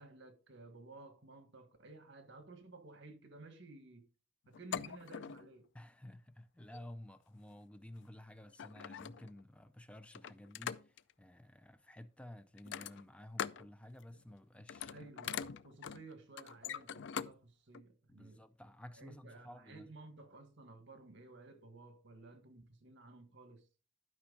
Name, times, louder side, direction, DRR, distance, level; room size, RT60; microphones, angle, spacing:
voice 1, 0.0-4.1 4.5-5.7 14.9-18.4 18.9-23.6, right 2 dB, 65° right, 1.6 m, -55 dB
sound 1, 4.5-5.5 6.6-6.9 8.0-8.1 8.5-9.4 10.1-11.1 12.6-13.7 14.0-14.3 14.6-17.3 17.7-17.8, left 8 dB, 65° left, 0.4 m, -43 dB
voice 2, 5.7-15.1 18.1-19.9, left 1 dB, 5° left, 0.4 m, -53 dB
11.5 x 5.4 x 4.0 m
head